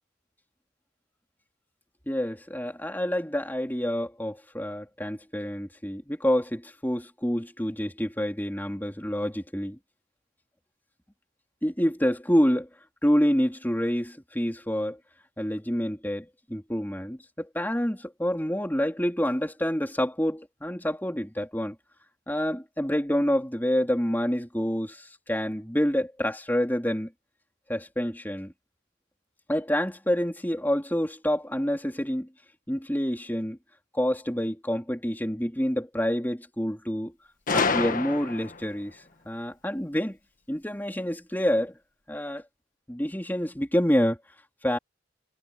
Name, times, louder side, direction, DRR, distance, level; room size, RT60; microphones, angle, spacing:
voice 1, 2.1-9.8 11.6-12.7 13.0-15.0 15.4-21.8 22.3-27.1 27.7-28.5 29.5-32.3 32.7-33.6 33.9-37.1 37.5-40.2 40.5-41.8 42.1-42.4 42.9-44.2 44.6-44.8, equal, 10° left, 3.7 m, -27 dB
Gunshot gunfire, 37.5-38.7, left 4 dB, 45° left, 1.5 m, -27 dB
head